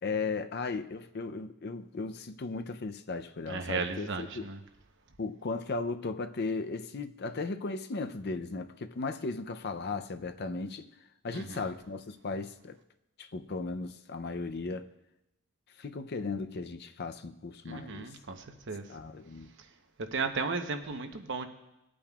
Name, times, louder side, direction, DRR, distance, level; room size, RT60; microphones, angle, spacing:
voice 1, 0.0-4.5 5.2-10.9 11.2-12.8 13.2-14.9 15.8-18.1 18.9-19.5, left 3 dB, 50° left, 0.6 m, -36 dB
voice 2, 3.5-4.6 11.3-11.6 17.7-18.8 20.1-21.5, right 4 dB, 55° right, 0.9 m, -35 dB
20.5 x 8.7 x 2.4 m
head